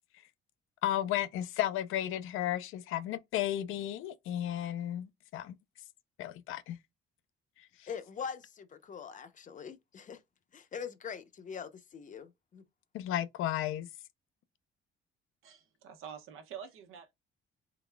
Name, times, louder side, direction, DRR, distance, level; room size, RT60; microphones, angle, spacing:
voice 1, 0.8-5.6 6.2-6.8 7.8-7.9 12.9-13.9, left 12 dB, 80° left, 0.6 m, -33 dB
voice 2, 7.9-10.2 10.5-12.6, left 7 dB, 40° left, 0.7 m, -43 dB
voice 3, 15.4-17.1, right 8 dB, 80° right, 1.1 m, -47 dB
3.9 x 3.5 x 2.2 m
cardioid pair, 125°, 21 cm